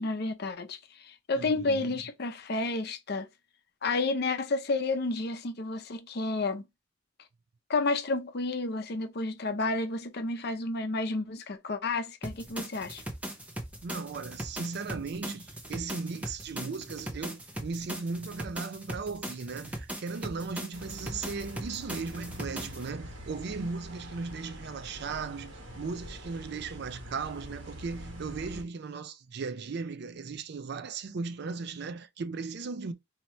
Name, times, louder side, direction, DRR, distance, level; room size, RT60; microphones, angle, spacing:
voice 1, 0.0-3.3 3.8-6.6 7.7-13.0, left 3 dB, 55° left, 0.6 m, -31 dB
voice 2, 1.3-2.0 13.8-32.9, right 4 dB, 55° right, 0.4 m, -37 dB
sound 1, 12.2-22.9, right 1 dB, 5° right, 0.6 m, -40 dB
sound 2, 20.7-28.6, equal, 80° right, 1.3 m, -45 dB
3.1 x 2.8 x 4.3 m
head